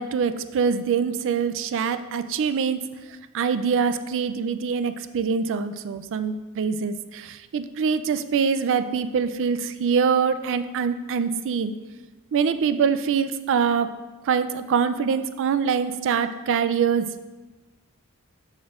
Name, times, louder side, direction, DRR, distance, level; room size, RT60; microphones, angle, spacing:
voice 1, 0.0-2.8 3.3-11.7 12.3-13.9 14.3-17.2, right 6 dB, 60° right, 11 dB, 0.4 m, -24 dB
12.5 x 4.3 x 2.5 m, 1.2 s
head